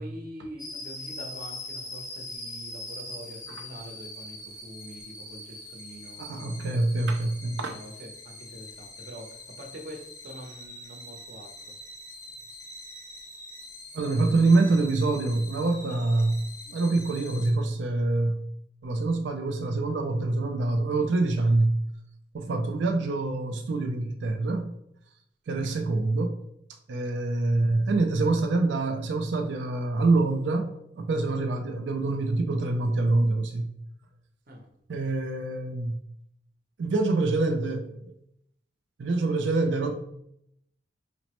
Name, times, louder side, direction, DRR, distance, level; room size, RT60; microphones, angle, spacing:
voice 1, 0.0-6.8 7.6-11.7 22.5-22.6 27.5-27.6 34.5-34.7, equal, 55° right, 0.8 m, -45 dB
sound 1, 0.6-17.5, left 2 dB, 15° left, 0.5 m, -43 dB
voice 2, 6.2-7.8 13.9-16.4 16.7-18.4 18.8-21.8 22.3-24.7 25.5-26.4 26.9-33.7 34.9-36.0 36.8-38.1 39.0-39.9, right 2 dB, 80° right, 0.4 m, -25 dB
5.1 x 2.0 x 2.9 m
head